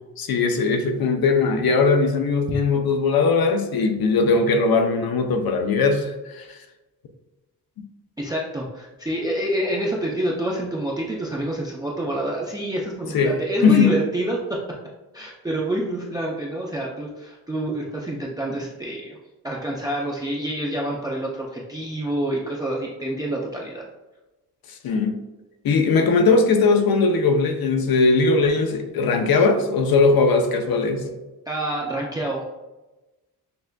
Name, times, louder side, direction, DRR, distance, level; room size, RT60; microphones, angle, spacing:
voice 1, 0.2-6.6 13.1-13.3 13.6-13.9 24.8-25.2 25.6-31.1, left 4 dB, 65° left, 5 dB, 0.6 m, -19 dB
voice 2, 8.2-14.6 15.1-19.2 19.4-23.8 31.5-32.4, right 1 dB, 10° right, -3 dB, 0.4 m, -27 dB
6.6 x 2.4 x 2.2 m, 1.1 s
wide cardioid pair, 130°, 39 cm